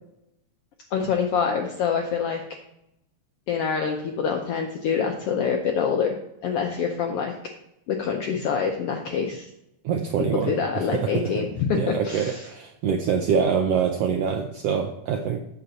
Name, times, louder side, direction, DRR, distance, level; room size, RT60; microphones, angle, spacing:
voice 1, 0.9-2.4 3.5-6.2 6.4-7.3 7.9-9.5 10.5-12.5, left 6 dB, 85° left, 3 dB, 1.3 m, -26 dB
voice 2, 9.8-11.4 11.7-15.4, right 7 dB, 85° right, 4 dB, 1.4 m, -25 dB
8.1 x 6.9 x 3.8 m, 0.82 s
omnidirectional pair, 3.5 m